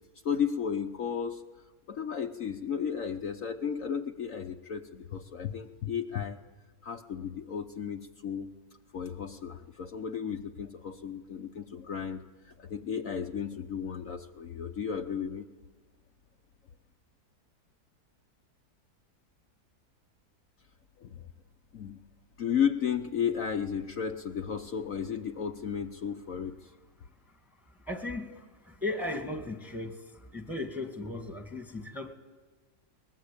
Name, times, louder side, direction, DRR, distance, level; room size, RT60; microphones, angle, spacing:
voice 1, 0.2-1.4 1.9-6.4 6.8-8.5 8.9-12.2 12.6-15.4 21.0-21.3 21.7-22.0 22.4-26.7, left 7 dB, 60° left, 4 dB, 1.2 m, -33 dB
voice 2, 27.9-28.3 28.7-30.0 30.3-32.1, left 2 dB, ahead, 4 dB, 2.0 m, -36 dB
22.5 x 20.0 x 8.7 m, 1.4 s
omnidirectional pair, 1.7 m